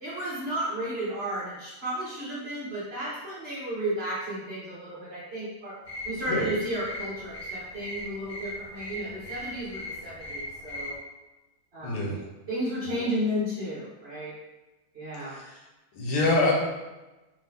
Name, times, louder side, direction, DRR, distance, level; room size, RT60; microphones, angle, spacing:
voice 1, 0.0-5.7 6.0-11.0 11.7-12.1 12.5-14.3 14.9-15.4, equal, 40° right, -8 dB, 1.0 m, -33 dB
sound 1, 5.8-11.0, left 1 dB, 45° left, 0.7 m, -39 dB
voice 2, 11.8-12.2 13.0-13.1 15.3-15.6 15.9-16.5, left 2 dB, 85° left, -3 dB, 1.8 m, -26 dB
3.8 x 2.7 x 3.4 m, 1.1 s
omnidirectional pair, 2.3 m